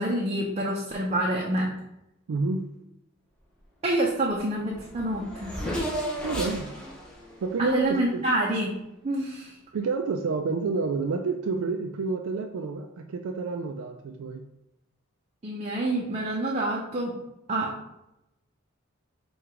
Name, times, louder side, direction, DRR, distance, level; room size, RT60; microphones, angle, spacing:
voice 1, 0.0-1.7 3.8-5.5 7.6-8.7 9.0-9.6 15.4-17.2 17.5-17.8, right 1 dB, 30° right, -3 dB, 0.5 m, -27 dB
voice 2, 2.3-2.7 6.2-6.7 7.4-8.2 9.7-14.4, right 4 dB, 85° right, 4 dB, 0.4 m, -29 dB
Race car auto racing / Accelerating revving vroom, 4.3-4.4 4.6-8.6, equal, 5° left, 0.9 m, -35 dB
4.6 x 2.3 x 4.9 m, 0.89 s
head